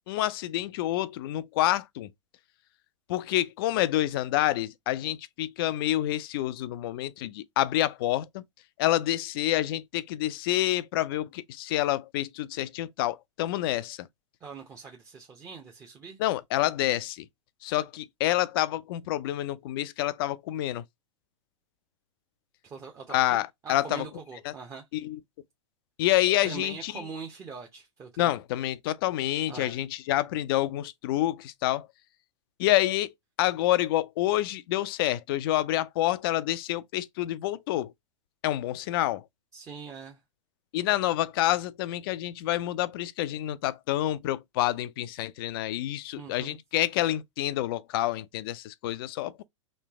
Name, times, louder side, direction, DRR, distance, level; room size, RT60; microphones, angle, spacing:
voice 1, 0.0-2.1 3.1-8.4 8.8-14.1 16.2-17.2 17.6-20.8 23.1-24.0 24.5-24.6 25.0-25.2 26.0-26.9 28.2-31.9 32.6-33.1 33.4-37.9 38.4-39.2 40.7-49.4, left 14 dB, 45° left, 0.4 m, -28 dB
voice 2, 14.4-16.2 22.6-24.8 26.4-28.3 29.5-29.8 39.5-40.2 46.1-46.6, right 6 dB, 20° right, 0.7 m, -42 dB
3.3 x 3.2 x 2.8 m
figure-of-eight pair, 105°, 17 cm